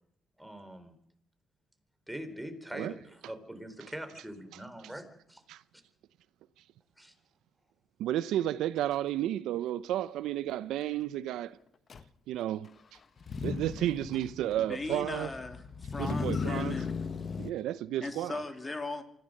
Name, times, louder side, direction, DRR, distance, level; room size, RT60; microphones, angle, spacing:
voice 1, 0.4-0.9 2.1-5.4 7.0-7.1, equal, 5° right, 4.1 m, -43 dB
voice 2, 8.0-11.6 12.3-12.7 13.4-15.3 16.0-16.8 17.4-18.4, right 12 dB, 85° right, 0.7 m, -32 dB
Motor vehicle (road), 11.9-12.0 13.2-17.5, left 5 dB, 45° left, 1.3 m, -36 dB
voice 3, 14.6-17.1 18.0-19.0, left 3 dB, 25° left, 3.0 m, -38 dB
24.5 x 16.0 x 6.6 m
cardioid pair, 90°, 0 cm